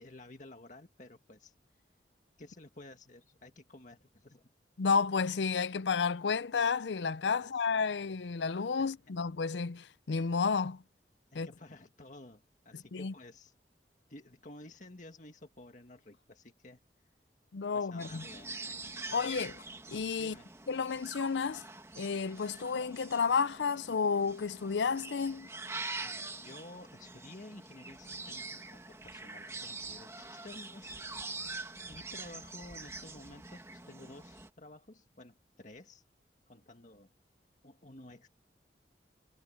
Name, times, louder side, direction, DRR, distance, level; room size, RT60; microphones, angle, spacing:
voice 1, 0.0-1.5 2.4-4.5 7.4-7.5 8.8-8.9 11.3-13.5 14.1-16.8 17.7-19.2 20.2-20.5 26.0-30.9 31.2-31.5 31.9-36.0 36.5-37.1 37.6-38.3, left 2 dB, 45° left, 1.8 m, -52 dB
voice 2, 4.8-10.8 11.3-11.5 12.7-13.1 17.5-18.2 19.1-19.6 19.9-20.4 20.7-21.6 22.0-25.5, left 5 dB, 90° left, 0.6 m, -31 dB
sound 1, 18.0-34.5, right 3 dB, 15° right, 2.3 m, -45 dB
head